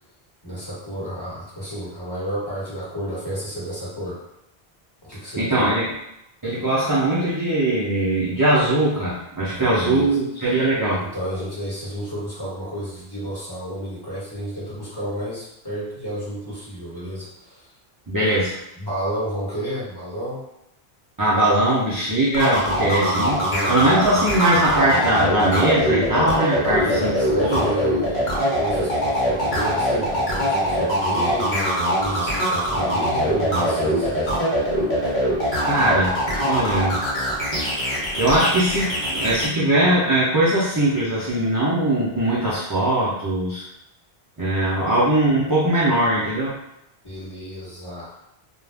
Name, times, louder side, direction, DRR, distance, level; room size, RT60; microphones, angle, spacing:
voice 1, 0.4-4.2 5.0-5.6 9.5-10.2 11.0-17.7 18.7-20.4 22.9-23.7 26.6-28.2 28.5-34.4 47.0-48.1, equal, 25° left, -10 dB, 1.1 m, -31 dB
voice 2, 5.4-5.9 6.4-11.0 18.1-18.6 21.2-23.4 23.7-27.6 35.6-37.0 38.2-43.7 44.4-46.6, right 1 dB, 30° right, -9 dB, 0.4 m, -20 dB
sound 1, 22.3-39.5, equal, 50° left, 0.9 m, -22 dB
2.4 x 2.1 x 3.3 m, 0.84 s
omnidirectional pair, 1.1 m